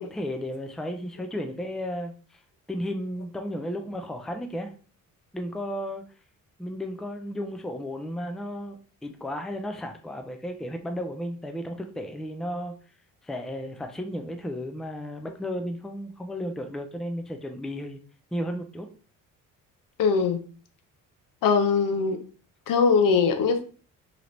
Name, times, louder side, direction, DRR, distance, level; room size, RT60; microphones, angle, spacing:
voice 1, 0.1-2.4 2.7-4.7 5.3-6.0 6.6-12.7 13.2-18.0 18.3-18.9, equal, ahead, 5 dB, 0.4 m, -34 dB
voice 2, 20.0-20.4 21.4-22.2 22.7-23.6, left 5 dB, 65° left, 7 dB, 0.7 m, -21 dB
3.0 x 2.4 x 3.1 m, 0.39 s
supercardioid pair, 75°, 36 cm